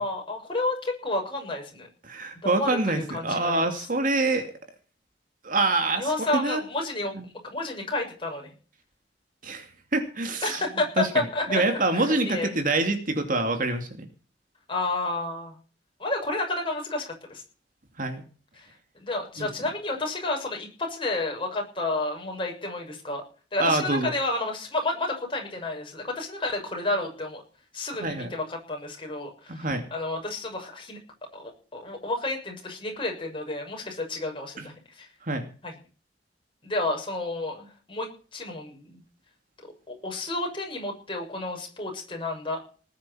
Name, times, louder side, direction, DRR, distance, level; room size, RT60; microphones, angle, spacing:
voice 1, 0.0-1.9 2.4-3.8 6.0-7.1 7.4-8.5 10.4-11.6 11.9-12.5 14.7-15.5 16.0-17.4 18.6-18.7 18.9-23.2 23.5-27.4 27.7-31.0 31.3-35.1 35.6-35.7 36.6-39.0 39.9-42.6, left 2 dB, 30° left, 1 dB, 6.6 m, -31 dB
voice 2, 2.0-4.5 5.4-6.6 7.1-7.3 9.4-9.7 9.9-10.6 11.0-14.1 18.0-18.2 19.4-19.5 23.6-24.1 28.0-28.3 29.5-29.8 34.6-34.7 35.2-35.4, right 2 dB, 50° right, 6 dB, 2.6 m, -26 dB
19.5 x 10.0 x 5.7 m, 0.40 s
head